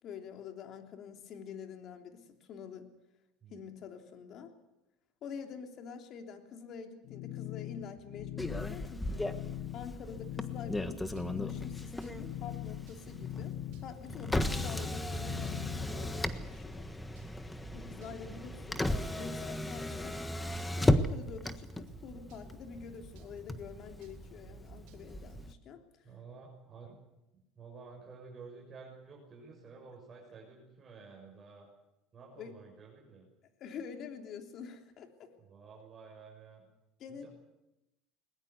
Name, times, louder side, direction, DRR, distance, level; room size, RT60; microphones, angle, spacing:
voice 1, 0.0-2.9 3.5-4.5 5.2-9.2 9.7-13.5 13.8-16.9 17.7-18.9 19.2-20.2 20.7-25.8 32.4-32.6 33.6-35.3 37.0-37.3, left 6 dB, 50° left, 5 dB, 3.3 m, -47 dB
sound 1, 7.0-15.9, left 16 dB, 75° left, 0.8 m, -42 dB
sound 2, 7.8-25.5, right 8 dB, 75° right, 4.2 m, -57 dB
Motor vehicle (road), 8.4-25.5, left 1 dB, 10° left, 1.4 m, -36 dB
voice 2, 18.2-18.9 26.0-27.0 27.5-31.7 32.1-33.2 35.4-36.6 37.1-37.3, right 4 dB, 30° right, -1 dB, 6.5 m, -52 dB
21.0 x 20.5 x 8.2 m, 0.95 s
supercardioid pair, 115°, 0 cm